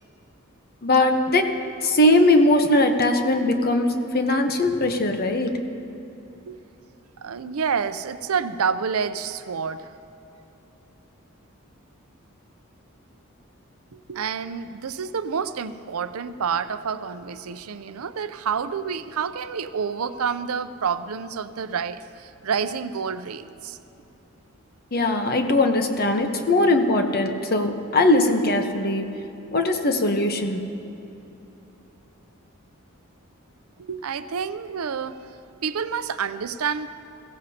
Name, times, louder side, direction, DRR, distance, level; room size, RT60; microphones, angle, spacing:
voice 1, 0.8-1.5 1.8-5.5 24.9-29.0 29.5-30.7, left 2 dB, 45° left, 5 dB, 1.0 m, -20 dB
voice 2, 7.2-9.9 13.9-23.8 33.8-35.2 35.6-36.9, right 6 dB, 85° right, 12 dB, 0.5 m, -28 dB
21.5 x 16.0 x 2.9 m, 2.9 s
head